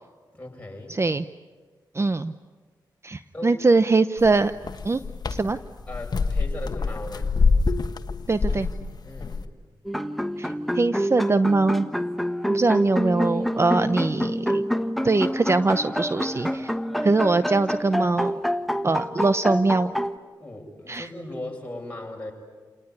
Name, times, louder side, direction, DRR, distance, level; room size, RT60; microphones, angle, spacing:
voice 1, 0.3-1.0 3.3-3.6 5.9-7.3 9.0-9.5 20.4-22.3, left 1 dB, 15° left, 0 dB, 7.9 m, -38 dB
voice 2, 0.9-1.2 1.9-2.3 3.0-4.5 4.8-5.0 5.3-5.6 8.3-8.7 10.4-10.5 10.7-11.9 12.5-14.6 15.0-16.7 17.0-18.3 18.8-19.9 20.9-21.1, right 3 dB, 35° right, 12 dB, 0.8 m, -22 dB
sound 1, 4.2-9.4, left 4 dB, 55° left, 1.2 m, -26 dB
sound 2, 9.9-20.2, equal, ahead, 1.3 m, -27 dB
29.0 x 19.0 x 9.8 m, 1.4 s
cardioid pair, 55°, 8 cm